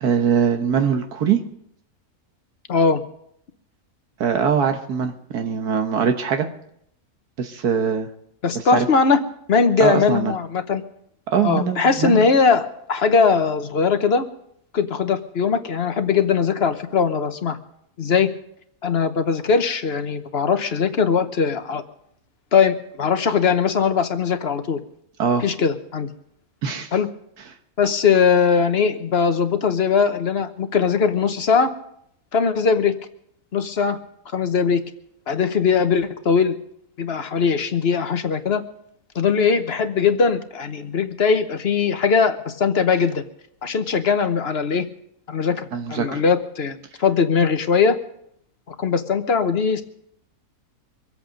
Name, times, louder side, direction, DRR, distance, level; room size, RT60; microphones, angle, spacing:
voice 1, 0.0-1.4 4.2-6.5 7.4-8.1 8.5-8.9 9.8-10.3 11.3-12.2 25.2-25.4 26.6-26.9 45.7-46.2, right 7 dB, 90° right, 5 dB, 1.7 m, -22 dB
voice 2, 2.7-3.0 8.4-9.2 9.5-10.8 11.4-14.2 14.7-17.6 18.0-18.3 18.8-21.8 22.5-24.8 25.4-26.1 26.9-27.1 27.8-31.7 32.3-32.9 33.5-34.0 34.3-34.8 35.3-36.6 37.0-38.6 39.1-43.2 43.6-44.9 45.3-48.0 48.7-49.8, left 5 dB, 45° left, 9 dB, 1.1 m, -20 dB
24.0 x 8.4 x 5.2 m, 0.72 s
omnidirectional pair, 1.6 m